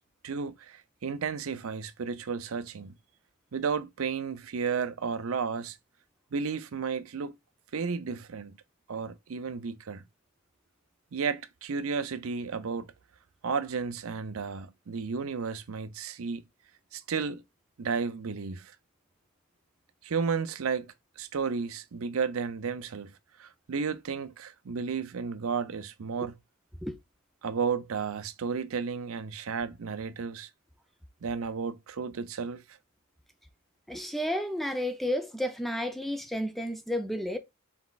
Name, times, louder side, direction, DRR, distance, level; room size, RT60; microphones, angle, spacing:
voice 1, 0.2-2.9 3.5-5.8 6.3-7.3 7.7-8.6 8.9-10.0 11.1-12.9 13.4-16.4 16.9-17.4 17.8-18.7 20.0-20.9 21.2-23.1 23.4-26.4 27.4-30.5 31.2-32.6, right 5 dB, 70° right, 0.5 m, -33 dB
voice 2, 33.9-37.4, equal, ahead, 0.5 m, -31 dB
4.2 x 4.0 x 2.3 m
head